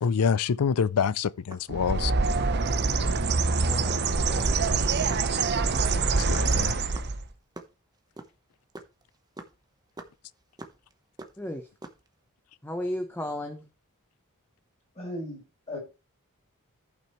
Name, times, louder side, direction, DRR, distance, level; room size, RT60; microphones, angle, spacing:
voice 1, 0.0-2.1 6.3-6.8, left 6 dB, 80° left, 0.5 m, -26 dB
sound 1, 1.3-2.9 3.3-3.5 3.9-7.7 8.0-10.9 11.2-12.1, right 2 dB, 20° right, 1.0 m, -45 dB
Bird, 1.7-7.3, right 4 dB, 50° right, 0.9 m, -25 dB
voice 2, 3.6-4.0 4.3-4.5 5.7-5.9 11.4-11.7 12.6-13.7, left 1 dB, 10° left, 0.9 m, -34 dB
voice 3, 15.0-15.8, left 1 dB, 30° left, 5.4 m, -37 dB
14.0 x 5.9 x 3.1 m
head